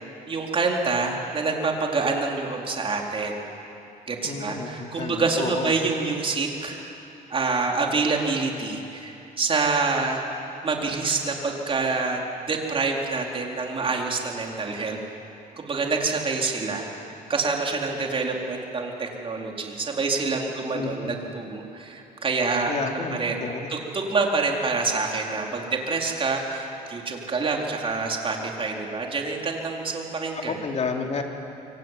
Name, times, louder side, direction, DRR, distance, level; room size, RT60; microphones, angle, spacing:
voice 1, 0.3-3.4 4.1-6.8 7.3-10.2 10.6-15.0 15.6-30.6, right 4 dB, 30° right, 0 dB, 4.3 m, -27 dB
voice 2, 4.2-5.7 20.7-21.2 22.7-23.7 30.4-31.2, left 4 dB, 40° left, 2 dB, 3.2 m, -31 dB
26.0 x 23.5 x 9.3 m, 3.0 s
cardioid pair, 110°, 17 cm